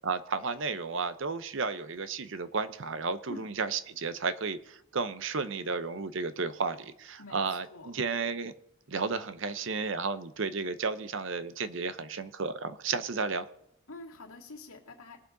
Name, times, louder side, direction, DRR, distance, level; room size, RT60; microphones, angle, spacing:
voice 1, 0.0-8.5 8.9-13.5, right 4 dB, 60° right, 12 dB, 0.7 m, -33 dB
voice 2, 7.2-7.9 13.9-15.2, left 2 dB, 80° left, -2 dB, 2.2 m, -46 dB
21.0 x 7.0 x 3.9 m, 0.75 s
head